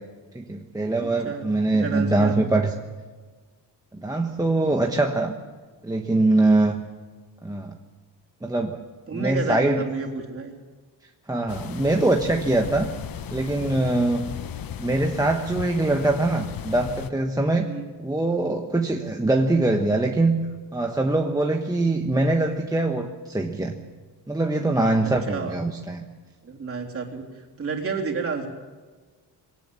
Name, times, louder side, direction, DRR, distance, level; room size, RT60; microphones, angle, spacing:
voice 1, 0.3-2.7 3.9-5.3 5.8-6.8 7.4-7.8 8.4-8.8 9.1-9.9 11.3-12.9 13.3-14.2 14.8-17.7 18.0-20.4 20.7-23.8 24.3-26.0, right 2 dB, 10° right, 2 dB, 1.1 m, -23 dB
voice 2, 1.0-1.4 1.7-2.6 9.1-10.5 17.6-17.8 25.0-25.5 26.4-28.5, right 4 dB, 35° right, 1 dB, 3.5 m, -31 dB
sound 1, 11.5-17.1, left 9 dB, 55° left, 1.0 m, -36 dB
22.0 x 18.0 x 7.1 m, 1.4 s
cardioid pair, 150°, 41 cm